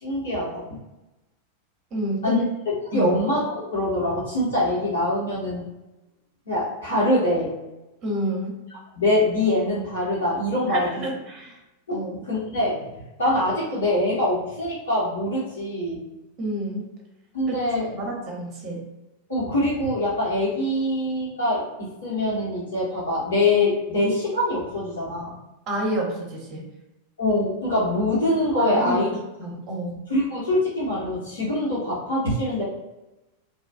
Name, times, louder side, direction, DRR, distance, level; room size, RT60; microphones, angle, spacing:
voice 1, 0.0-0.6 2.2-2.4 2.9-5.7 6.5-7.5 8.9-11.0 11.9-12.8 13.2-16.0 17.3-17.9 19.3-25.4 27.2-29.1 30.1-32.6, left 1 dB, 70° left, -9 dB, 1.1 m, -24 dB
voice 2, 1.9-2.4 2.9-3.1 8.0-8.5 10.7-11.6 11.9-12.2 16.4-16.8 17.5-17.6 17.9-18.8 25.7-26.6 28.6-29.0 29.4-30.0, right 1 dB, 35° right, -1 dB, 0.8 m, -29 dB
2.9 x 2.4 x 2.3 m, 1.0 s
figure-of-eight pair, 90°, 0 cm